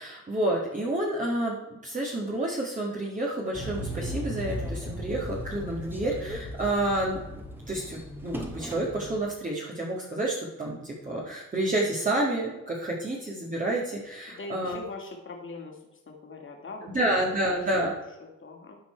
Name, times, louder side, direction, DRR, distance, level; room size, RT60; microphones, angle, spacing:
voice 1, 0.0-7.4 7.7-14.8 16.9-17.9, right 1 dB, 25° right, -4 dB, 2.0 m, -29 dB
sound 1, 3.5-9.2, equal, 5° right, 1.8 m, -36 dB
voice 2, 14.3-15.8 16.1-17.1 17.5-18.8, left 3 dB, 40° left, 1 dB, 2.4 m, -42 dB
12.5 x 4.5 x 4.5 m, 0.96 s
cardioid pair, 90°, 30 cm